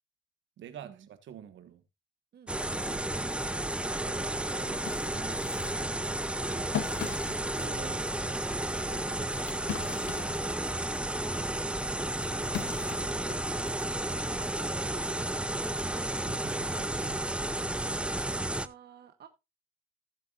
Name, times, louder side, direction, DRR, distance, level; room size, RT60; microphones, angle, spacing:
voice 1, 0.6-1.8 10.0-10.2 16.2-17.3, right 9 dB, 70° right, 1.4 m, -47 dB
voice 2, 2.3-10.5 11.8-13.4 14.3-16.1 17.7-19.3, right 8 dB, 55° right, 1.0 m, -52 dB
sound 1, 2.5-18.7, right 1 dB, 5° right, 0.6 m, -32 dB
sound 2, 3.9-4.0 4.4-10.8 11.2-13.9, left 10 dB, 70° left, 0.8 m, -41 dB
16.0 x 7.0 x 2.5 m
cardioid pair, 90°, 20 cm